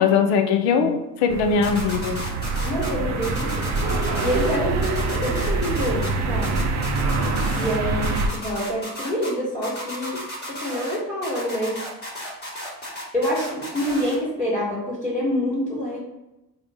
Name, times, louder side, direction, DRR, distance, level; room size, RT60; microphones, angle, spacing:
voice 1, 0.0-2.3, left 6 dB, 55° left, 6 dB, 0.6 m, -20 dB
sound 1, 1.3-8.3, right 3 dB, 35° right, 0.6 m, -25 dB
sound 2, 1.6-2.9 3.2-4.6 4.8-6.1 6.4-7.8 8.0-9.3 9.6-11.0 11.2-14.2, equal, 20° left, 1.4 m, -34 dB
voice 2, 2.6-3.7 4.2-6.6 7.5-10.2 10.5-11.8 13.1-16.0, equal, ahead, -9 dB, 1.4 m, -27 dB
3.7 x 2.2 x 3.5 m, 0.96 s
hypercardioid pair, 55°, 50 cm